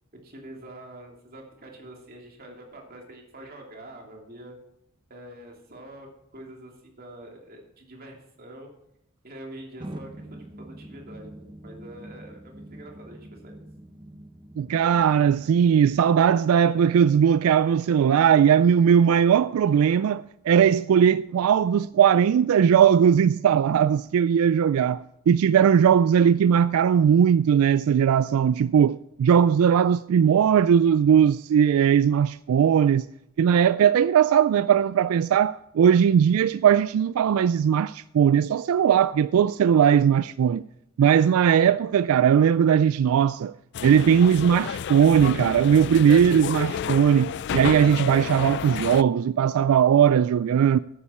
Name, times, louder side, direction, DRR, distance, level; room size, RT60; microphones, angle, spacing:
voice 1, 0.2-4.6 5.1-6.1 6.3-8.7 9.2-13.6, right 1 dB, 45° right, 2.7 m, -45 dB
sound 1, 9.8-16.0, right 1 dB, 20° right, 0.8 m, -44 dB
voice 2, 14.6-33.0 33.4-40.6 41.0-43.5 43.8-50.8, right 8 dB, 85° right, 0.3 m, -19 dB
sound 2, 43.7-49.0, left 7 dB, 55° left, 0.3 m, -31 dB
13.5 x 9.6 x 4.3 m
head